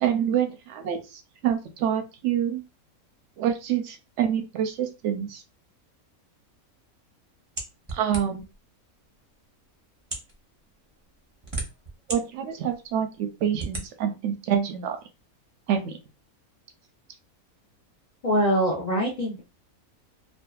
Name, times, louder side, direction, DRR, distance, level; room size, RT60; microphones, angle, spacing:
voice 1, 0.0-2.6 3.4-5.4 7.9-8.5 12.1-15.0 15.7-16.0, right 9 dB, 65° right, 6 dB, 0.8 m, -27 dB
sound 1, 7.6-8.5 9.3-9.4 10.0-10.3 11.1-12.2 12.7-12.8 13.6-13.9, right 2 dB, 30° right, 0.5 m, -33 dB
voice 2, 18.2-19.4, equal, 65° left, -4 dB, 0.4 m, -23 dB
2.6 x 2.3 x 2.3 m, 0.28 s
omnidirectional pair, 1.5 m